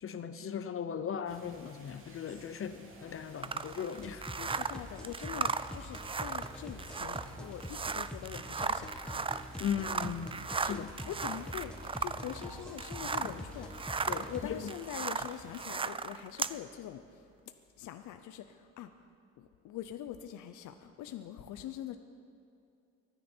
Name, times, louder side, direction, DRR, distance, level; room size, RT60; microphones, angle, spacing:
voice 1, 0.0-4.3 9.6-10.9 13.2-13.3 14.1-14.3, left 7 dB, 45° left, 11 dB, 0.7 m, -38 dB
sound 1, 1.3-15.7, right 2 dB, 45° right, 2.7 m, -55 dB
sound 2, 3.4-13.4 13.7-16.6, right 5 dB, 20° right, 0.4 m, -36 dB
sound 3, 4.0-14.5, left 1 dB, 5° left, 1.3 m, -46 dB
voice 2, 4.2-9.2 10.6-11.7 12.0-14.0 14.3-17.2 17.8-18.9 19.4-22.0, left 11 dB, 80° left, 8 dB, 0.7 m, -44 dB
24.5 x 9.9 x 4.5 m, 2.6 s
cardioid pair, 90°, 30 cm